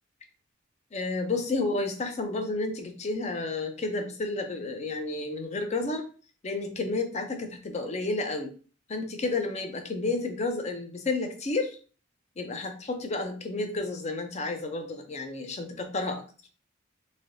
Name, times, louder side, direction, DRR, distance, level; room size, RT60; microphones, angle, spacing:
voice 1, 0.9-6.1 6.4-8.5 8.9-11.8 12.4-16.2, left 3 dB, 30° left, 5 dB, 0.4 m, -31 dB
3.2 x 2.6 x 2.6 m, 0.38 s
head